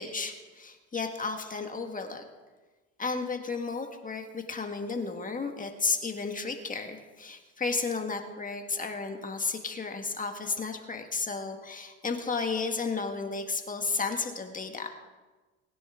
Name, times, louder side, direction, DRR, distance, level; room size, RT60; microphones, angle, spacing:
voice 1, 0.0-2.2 3.0-14.9, left 4 dB, 20° left, 5 dB, 1.6 m, -33 dB
21.0 x 10.5 x 3.7 m, 1.2 s
supercardioid pair, 100°, 36 cm